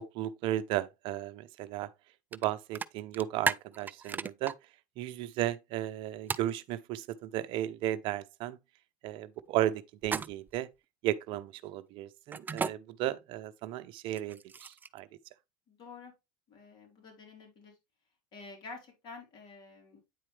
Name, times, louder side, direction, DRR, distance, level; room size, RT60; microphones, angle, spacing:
voice 1, 0.0-1.9 2.3-4.5 5.0-8.6 9.0-10.7 11.0-15.1, right 13 dB, 55° right, 0.7 m, -34 dB
sound 1, 2.3-2.5 2.8-4.5 6.3-6.5 10.0-10.6 12.3-12.7 14.1-15.0, right 5 dB, 20° right, 0.4 m, -34 dB
voice 2, 15.7-16.1 16.5-17.8 18.3-20.0, left 4 dB, 45° left, 4.1 m, -49 dB
9.3 x 4.3 x 3.2 m
hypercardioid pair, 95°, 10 cm